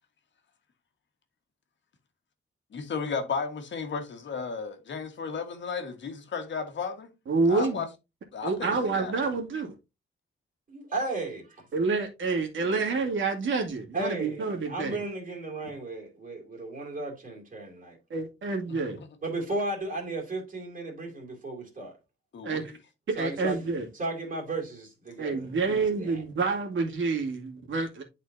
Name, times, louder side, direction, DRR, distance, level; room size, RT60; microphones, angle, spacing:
voice 1, 2.7-7.1 7.5-7.9 8.3-9.1 18.7-19.1 22.3-22.7, left 5 dB, 60° left, 1.5 m, -34 dB
voice 2, 7.3-7.8 8.4-9.7 11.7-15.0 18.1-19.0 22.4-22.6 23.1-23.9 25.2-28.0, right 4 dB, 65° right, 2.2 m, -28 dB
voice 3, 10.7-11.4 13.9-18.0 19.2-22.0 23.2-23.6 23.9-26.2, right 2 dB, 40° right, 2.6 m, -35 dB
11.0 x 4.2 x 2.6 m
wide cardioid pair, 140°, 21 cm